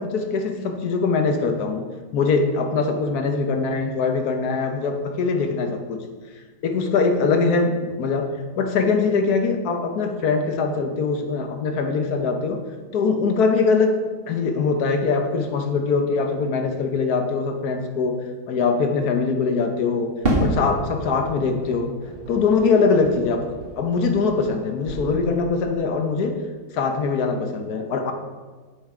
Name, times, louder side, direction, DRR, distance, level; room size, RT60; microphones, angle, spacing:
voice 1, 0.0-6.0 6.6-12.6 12.9-22.0 22.3-26.4 26.7-28.1, left 4 dB, 70° left, 5 dB, 1.4 m, -22 dB
Fireworks, 20.2-24.6 24.9-25.7, right 1 dB, 35° right, 1.8 m, -29 dB
7.7 x 6.7 x 4.9 m, 1.4 s
omnidirectional pair, 1.7 m